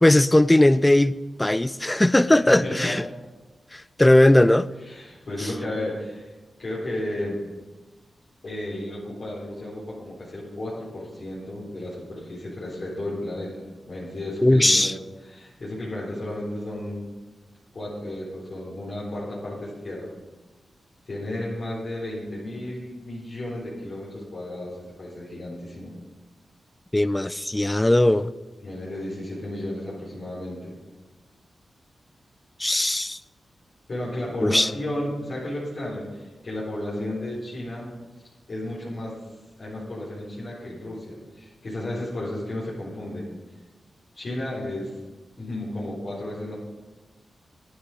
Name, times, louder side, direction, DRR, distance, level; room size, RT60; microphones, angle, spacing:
voice 1, 0.0-1.1 1.4-3.0 3.7-4.7 5.4-5.5 14.4-14.9 26.9-28.3 32.6-33.2 34.4-34.7, left 1 dB, 15° left, 17 dB, 0.5 m, -18 dB
voice 2, 2.5-2.9 4.8-6.3 6.6-7.4 8.4-14.9 15.2-17.1 17.7-20.1 21.0-25.9 28.6-30.7 33.9-37.9 38.5-39.2 39.6-43.2 44.1-44.9 45.4-46.5, left 1 dB, 60° left, -8 dB, 4.2 m, -33 dB
11.5 x 10.0 x 5.2 m, 1.2 s
cardioid pair, 50°, 0 cm